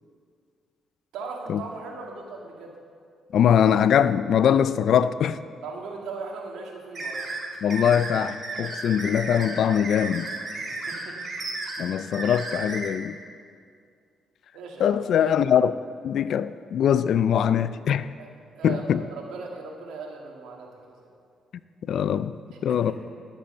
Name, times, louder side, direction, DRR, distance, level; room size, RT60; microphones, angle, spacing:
voice 1, 1.1-2.8 5.6-7.2 10.6-11.2 14.5-15.0 18.2-21.1 22.5-22.9, right 4 dB, 85° right, 2.0 m, -38 dB
voice 2, 3.3-5.4 7.6-10.3 11.8-13.2 14.8-15.7 16.0-18.1 18.6-19.0 21.9-22.4 22.6-22.9, left 9 dB, 65° left, 0.4 m, -22 dB
sound 1, 6.9-12.9, right 3 dB, 40° right, 2.4 m, -33 dB
11.5 x 7.8 x 6.7 m
cardioid pair, 90°, 0 cm